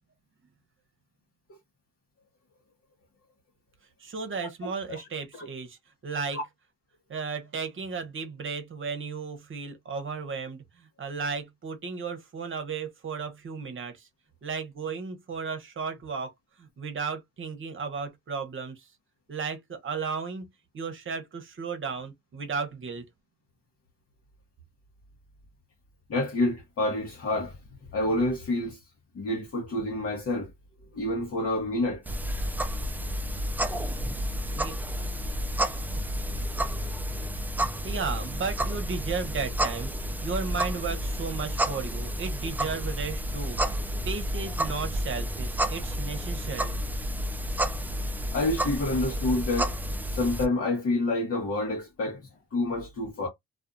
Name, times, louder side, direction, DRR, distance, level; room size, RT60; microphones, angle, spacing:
voice 1, 4.0-6.4 7.1-14.1 14.4-16.3 16.6-18.9 19.3-20.5 20.7-23.1 34.5-34.8 35.2-35.4 37.7-46.8, right 5 dB, 40° right, 1.0 m, -34 dB
voice 2, 4.6-5.0 5.3-5.5 6.3-6.4 26.1-27.6 27.9-28.8 29.1-30.5 30.9-32.0 48.3-49.7 50.1-52.2 52.5-53.3, left 2 dB, 50° left, 1.0 m, -28 dB
sound 1, 32.1-50.5, equal, 5° right, 0.4 m, -30 dB
2.5 x 2.3 x 2.6 m
cardioid pair, 90°, 30 cm